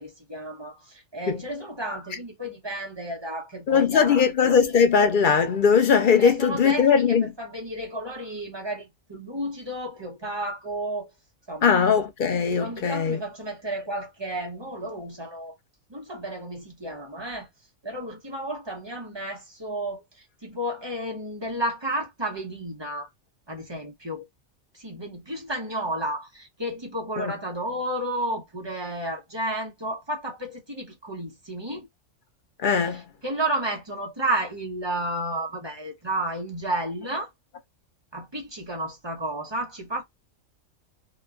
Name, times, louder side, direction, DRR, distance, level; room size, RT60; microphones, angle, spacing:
voice 1, 0.0-4.5 6.2-11.1 11.5-11.7 12.6-15.5 15.9-17.5 17.8-23.1 23.5-24.2 24.7-31.9 32.9-37.3 38.1-40.0, right 1 dB, 25° right, 0.8 m, -32 dB
voice 2, 3.7-7.3 11.6-13.2 27.2-27.3 32.6-33.0, left 6 dB, 55° left, 0.6 m, -20 dB
3.0 x 2.2 x 2.4 m
omnidirectional pair, 1.4 m